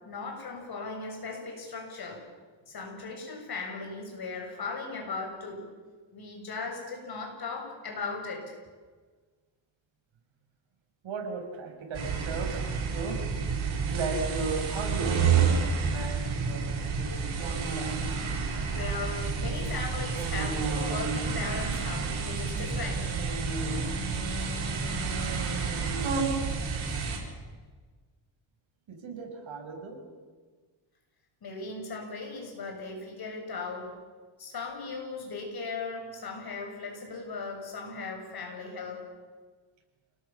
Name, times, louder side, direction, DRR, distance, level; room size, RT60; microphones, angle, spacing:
voice 1, 0.0-2.2 2.7-5.6 6.1-8.5 18.7-23.1 31.4-33.9 34.4-39.1, left 4 dB, 50° left, 2 dB, 6.9 m, -38 dB
voice 2, 11.0-12.6 12.9-13.2 13.6-15.3 15.8-18.1 28.9-30.0, right 4 dB, 75° right, 2 dB, 6.4 m, -36 dB
sound 1, 11.9-27.2, right 5 dB, 90° right, 7.3 m, -29 dB
28.5 x 19.5 x 7.2 m, 1.4 s
cardioid pair, 130°, 47 cm